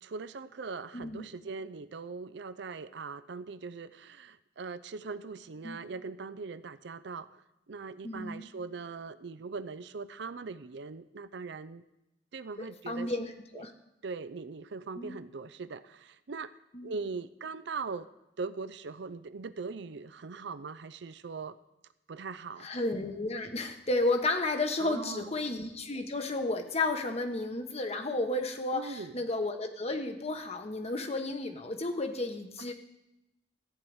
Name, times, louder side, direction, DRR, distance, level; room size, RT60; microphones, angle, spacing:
voice 1, 0.0-7.4 7.7-11.8 12.3-13.1 13.5-13.6 14.0-16.5 16.8-18.1 18.4-21.6 22.1-22.7 24.8-25.4 28.7-29.2, right 4 dB, 70° right, 14 dB, 0.5 m, -40 dB
voice 2, 0.9-1.3 5.6-5.8 8.0-8.4 12.6-13.7 15.0-15.2 16.7-16.9 22.6-32.7, left 2 dB, 35° left, 5 dB, 1.1 m, -32 dB
14.0 x 4.7 x 8.8 m, 0.93 s
head